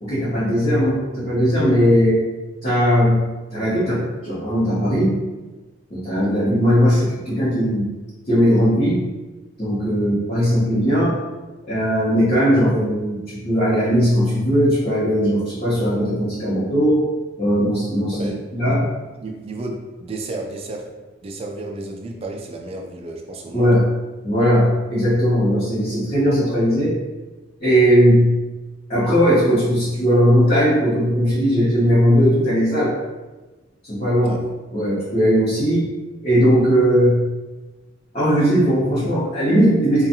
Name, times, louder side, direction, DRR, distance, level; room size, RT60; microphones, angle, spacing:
voice 1, 0.0-2.1 2.6-3.2 3.5-5.2 5.9-7.9 8.3-9.0 9.6-11.1 11.7-17.0 17.4-18.8 23.5-23.8 24.2-26.9 27.6-28.3 28.9-32.9 33.8-34.4 34.7-35.8 36.2-37.2 38.1-40.1, equal, 35° left, -13 dB, 0.9 m, -18 dB
voice 2, 19.2-20.9 21.2-23.8 34.2-34.4, right 2 dB, 30° right, 2 dB, 0.3 m, -32 dB
2.6 x 2.3 x 2.7 m, 1.2 s
head